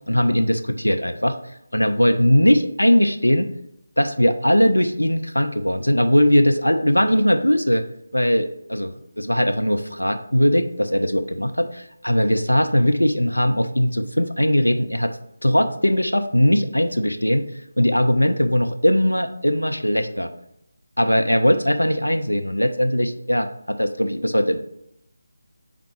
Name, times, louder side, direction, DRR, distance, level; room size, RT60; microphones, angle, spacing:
voice 1, 0.0-1.4 1.7-3.5 4.0-7.8 8.1-8.9 9.2-15.1 15.4-20.3 21.0-24.6, equal, 90° left, 7 dB, 0.5 m, -20 dB
4.6 x 3.7 x 5.5 m, 0.79 s
figure-of-eight pair, 160°, 0 cm